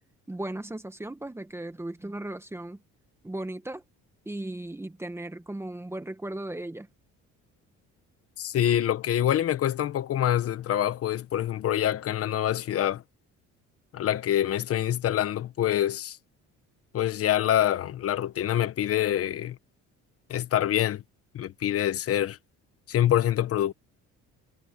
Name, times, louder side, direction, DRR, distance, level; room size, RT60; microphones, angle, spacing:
voice 1, 0.3-2.8 3.2-3.8 4.2-6.9, right 1 dB, 10° right, 1.7 m, -36 dB
voice 2, 8.4-13.0 13.9-16.2 16.9-19.6 20.3-21.0 21.3-22.4 22.9-23.7, left 11 dB, 50° left, 1.2 m, -26 dB
cardioid pair, 130°, 30 cm